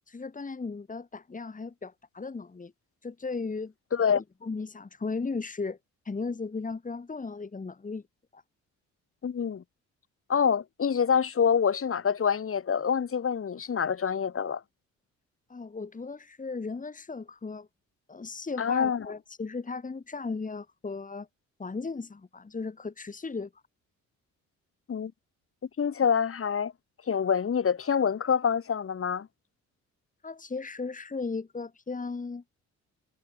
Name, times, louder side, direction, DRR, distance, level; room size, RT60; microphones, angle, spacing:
voice 1, 0.1-2.7 3.0-3.7 4.0-5.8 6.1-8.0 8.3-8.4 15.5-17.7 18.1-21.3 21.6-23.5 30.2-32.4, left 4 dB, 25° left, 4.0 m, -36 dB
voice 2, 3.9-4.2 9.2-9.6 10.3-14.6 18.6-19.1 24.9-25.1 25.8-26.7 27.1-29.3, left 7 dB, 45° left, 5.3 m, -26 dB
cardioid pair, 90°, 30 cm